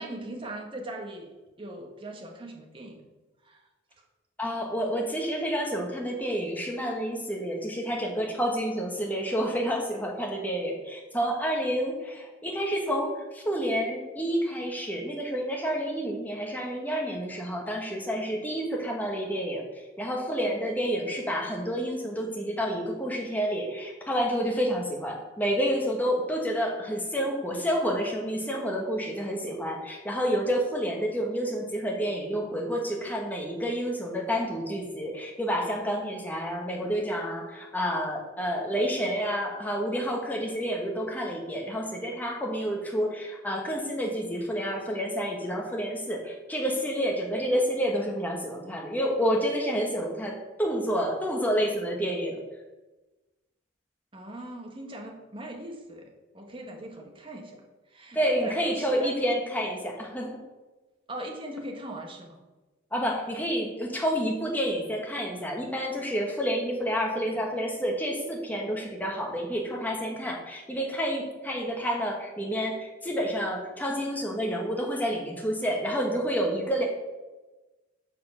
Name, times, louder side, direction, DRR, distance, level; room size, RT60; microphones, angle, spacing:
voice 1, 0.0-3.0 3.4-3.6 54.1-56.1 56.3-57.6 57.9-59.2 61.1-62.4, right 1 dB, 25° right, 2 dB, 1.1 m, -40 dB
voice 2, 4.4-19.6 20.0-52.4 58.1-60.4 62.9-76.8, equal, 10° left, 0 dB, 1.2 m, -29 dB
6.9 x 5.1 x 5.4 m, 1.2 s
head